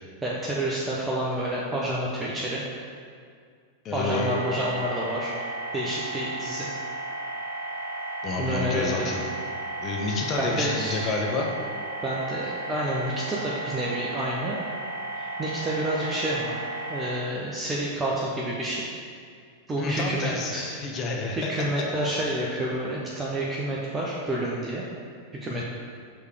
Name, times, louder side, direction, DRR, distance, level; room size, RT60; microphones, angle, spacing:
voice 1, 0.2-2.6 3.9-5.3 5.7-6.7 8.4-9.0 10.4-11.1 12.0-14.6 15.2-16.6 16.9-18.8 19.7-20.8 21.4-24.8 25.4-25.6, right 1 dB, 15° right, -4 dB, 0.7 m, -29 dB
voice 2, 3.8-4.3 8.2-9.3 9.8-11.5 19.8-21.5 25.5-25.6, left 3 dB, 30° left, 0 dB, 0.7 m, -29 dB
sound 1, 4.1-17.1, right 2 dB, 80° left, 1.1 m, -34 dB
6.4 x 3.4 x 4.9 m, 2.2 s
figure-of-eight pair, 90°, 0 cm